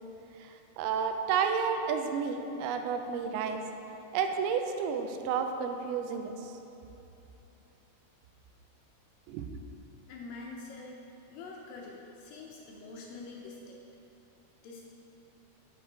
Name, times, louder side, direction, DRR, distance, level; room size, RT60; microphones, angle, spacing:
voice 1, 0.4-3.6 4.1-6.5 9.3-9.5, right 6 dB, 85° right, 6 dB, 2.5 m, -31 dB
voice 2, 10.1-11.0 11.3-13.8 14.6-14.9, left 3 dB, 75° left, -1 dB, 2.1 m, -45 dB
7.3 x 6.7 x 4.5 m, 2.9 s
omnidirectional pair, 4.4 m